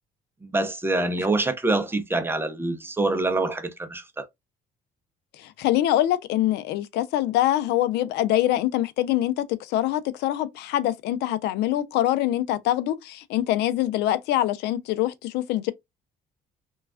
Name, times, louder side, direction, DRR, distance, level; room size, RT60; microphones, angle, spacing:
voice 1, 0.4-4.3, right 2 dB, 15° right, 0.5 m, -25 dB
voice 2, 5.4-15.7, left 13 dB, 80° left, 0.4 m, -24 dB
3.1 x 2.3 x 2.3 m
cardioid pair, 110°, 17 cm